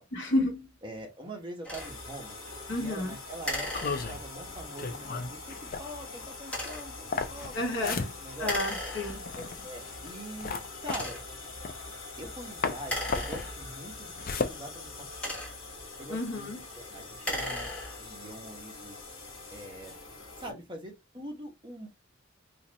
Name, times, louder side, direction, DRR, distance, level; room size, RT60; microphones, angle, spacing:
voice 1, 0.1-0.7 2.7-3.1 7.5-8.0 8.4-9.2 16.1-16.6, left 1 dB, 65° left, 1.3 m, -30 dB
voice 2, 0.8-2.4 2.7-3.7 4.1-7.5 7.8-8.6 9.4-11.2 12.2-15.3 16.0-19.0 19.5-19.9 20.4-21.9, right 1 dB, 25° right, 1.1 m, -43 dB
sound 1, 1.6-1.9 3.4-4.5 6.4-7.0 8.4-9.4 10.1-10.2 10.8-11.5 12.8-13.9 14.9-15.8 17.1-18.2, left 1 dB, 5° left, 1.1 m, -36 dB
sound 2, 1.8-20.5, left 3 dB, 90° left, 1.5 m, -44 dB
sound 3, 3.7-12.3 12.6-15.5, left 4 dB, 45° left, 0.5 m, -36 dB
4.0 x 2.5 x 2.9 m
head